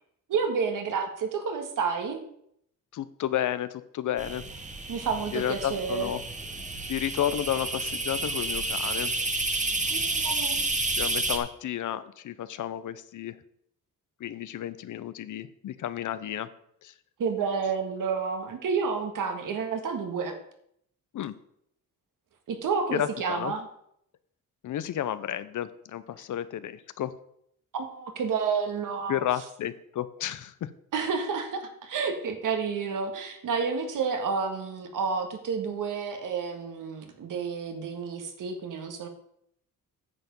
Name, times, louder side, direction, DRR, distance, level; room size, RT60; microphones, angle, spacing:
voice 1, 0.3-2.2 4.9-6.1 9.9-10.6 17.2-20.4 22.5-23.7 27.7-29.2 30.9-39.1, right 5 dB, 70° right, 6 dB, 1.7 m, -30 dB
voice 2, 2.9-4.4 5.3-6.2 6.9-9.1 9.5-9.6 11.0-13.4 14.2-16.5 16.8-16.9 21.1-21.3 22.9-23.5 24.6-27.1 29.1-30.7, left 11 dB, 60° left, 14 dB, 0.7 m, -32 dB
sound 1, 4.2-11.4, right 2 dB, 20° right, 1.5 m, -30 dB
9.8 x 6.9 x 5.4 m, 0.71 s
cardioid pair, 100°, 34 cm